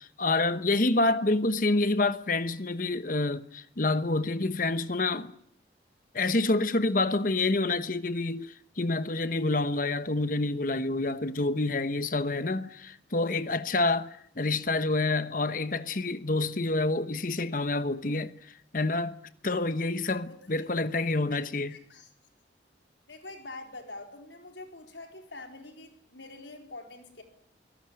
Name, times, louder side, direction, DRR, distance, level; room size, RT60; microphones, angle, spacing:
voice 1, 0.0-5.3 6.1-18.3 18.7-19.1 19.4-21.7, left 2 dB, 50° left, 1.0 m, -28 dB
voice 2, 21.3-22.1 23.1-27.2, left 2 dB, 80° left, 4.3 m, -45 dB
24.0 x 17.5 x 9.8 m
head